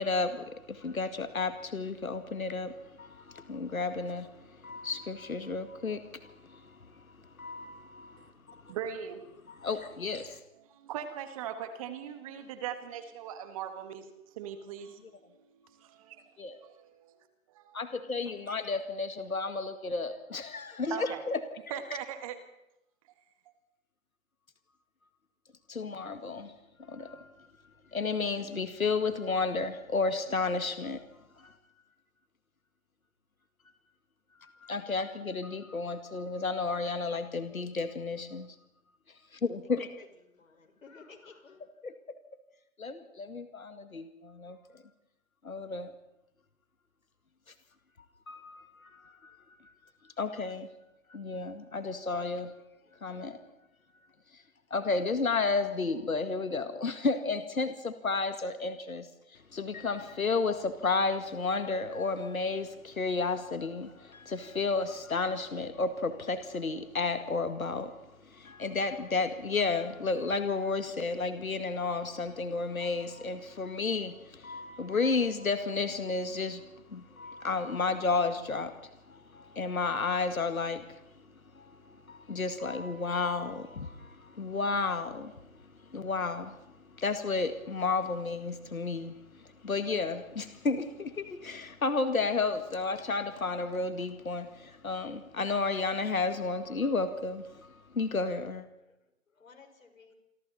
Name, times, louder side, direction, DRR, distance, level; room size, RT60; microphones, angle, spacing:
voice 1, 0.0-4.3 4.6-7.0 7.4-8.6 9.5-10.4 16.4-16.6 17.7-21.4 25.7-26.5 26.8-27.3 27.9-31.0 31.4-31.5 34.4-38.6 39.3-39.9 41.8-41.9 42.8-44.8 45.4-45.9 48.3-49.4 50.2-50.7 51.1-52.5 53.0-53.4 54.7-59.1 59.3-68.0 68.2-78.7 79.1-81.0 81.5-85.3 85.9-86.6 87.0-98.7, left 4 dB, 90° left, 9 dB, 2.0 m, -32 dB
voice 2, 8.7-9.2 10.7-14.1 14.4-15.0 15.7-17.2 17.5-17.8 18.5-18.6 20.9-21.2 21.7-22.4, right 9 dB, 25° right, 8 dB, 2.0 m, -40 dB
voice 3, 40.4-41.6 98.8-99.0 99.3-100.1, left 4 dB, 70° left, 5 dB, 5.5 m, -54 dB
28.5 x 24.0 x 4.3 m, 0.86 s
hypercardioid pair, 150°, 41 cm